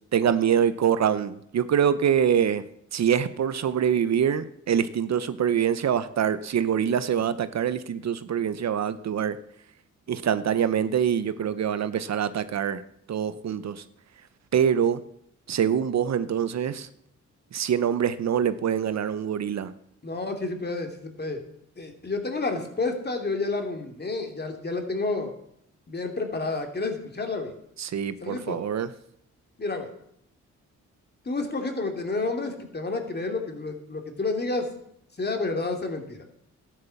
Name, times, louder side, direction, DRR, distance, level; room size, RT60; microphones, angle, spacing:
voice 1, 0.1-2.6 2.9-9.4 10.1-12.8 13.1-13.8 14.5-15.0 15.5-16.9 17.5-19.7 27.8-28.9, right 8 dB, 60° right, 13 dB, 0.8 m, -25 dB
voice 2, 20.0-21.4 21.8-25.3 25.9-27.5 28.2-28.6 29.6-29.9 31.2-34.7 35.2-36.2, left 3 dB, 35° left, 4 dB, 2.8 m, -30 dB
12.5 x 10.5 x 7.0 m, 0.73 s
cardioid pair, 80°, 30 cm